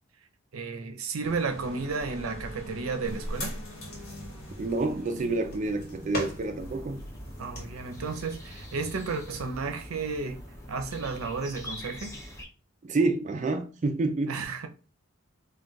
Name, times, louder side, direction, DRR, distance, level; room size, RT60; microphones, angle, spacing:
voice 1, 0.5-3.6 7.4-10.4 10.7-12.2 14.3-14.7, right 4 dB, 90° right, 0.5 m, -33 dB
sound 1, 1.2-6.8, equal, 75° left, 1.3 m, -41 dB
sound 2, 3.0-9.5, equal, 45° left, 1.0 m, -43 dB
voice 2, 4.6-7.0 12.8-14.4, right 3 dB, 35° right, 0.3 m, -28 dB
sound 3, 6.6-12.4, left 1 dB, 15° left, 0.6 m, -43 dB
2.4 x 2.2 x 3.8 m
head